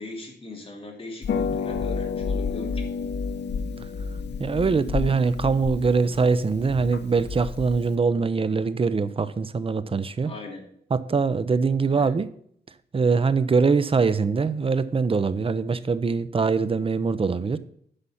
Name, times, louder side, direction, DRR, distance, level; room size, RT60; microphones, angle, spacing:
voice 1, 0.0-3.1 10.2-10.7 11.9-12.2, left 2 dB, 30° left, 0 dB, 2.9 m, -39 dB
Harp, 1.2-8.0, left 5 dB, 70° left, 0.8 m, -30 dB
voice 2, 4.4-10.3 10.9-12.3 12.9-17.6, right 4 dB, 30° right, 14 dB, 0.6 m, -23 dB
9.9 x 5.7 x 5.6 m, 0.65 s
wide cardioid pair, 125°, 18 cm